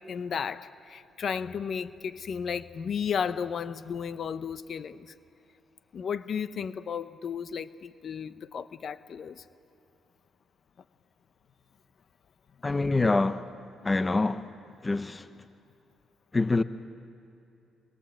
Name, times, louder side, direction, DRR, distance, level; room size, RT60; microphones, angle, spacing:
voice 1, 0.1-5.1 5.9-9.4, left 7 dB, 55° left, 0.9 m, -34 dB
voice 2, 12.6-13.5 13.8-14.5 14.8-15.3 16.3-16.6, left 3 dB, 20° left, 0.8 m, -25 dB
25.0 x 22.0 x 7.7 m
cardioid pair, 90°, 0 cm